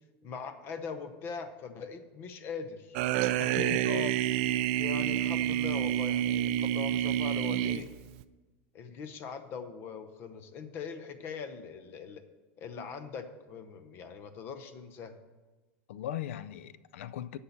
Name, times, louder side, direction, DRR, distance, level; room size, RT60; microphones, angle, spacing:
voice 1, 0.2-3.0 4.8-7.9 8.7-12.2 12.6-15.1, left 6 dB, 35° left, 0.8 m, -41 dB
sound 1, 2.9-8.2, right 12 dB, 55° right, 0.4 m, -28 dB
voice 2, 3.4-4.2 15.9-17.4, left 11 dB, 80° left, 0.4 m, -38 dB
8.0 x 5.5 x 7.2 m
supercardioid pair, 155°, 7 cm